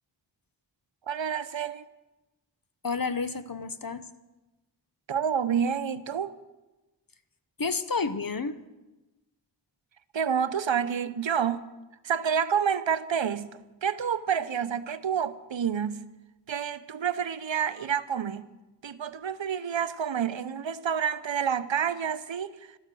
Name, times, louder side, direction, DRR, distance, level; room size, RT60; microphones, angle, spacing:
voice 1, 1.1-1.9 5.1-6.3 10.1-11.6 12.0-16.1 16.5-18.5 18.8-22.8, right 7 dB, 85° right, 0.7 m, -29 dB
voice 2, 2.8-4.1 7.6-8.6, left 4 dB, 50° left, 0.9 m, -30 dB
13.0 x 12.5 x 7.5 m
wide cardioid pair, 40°, 44 cm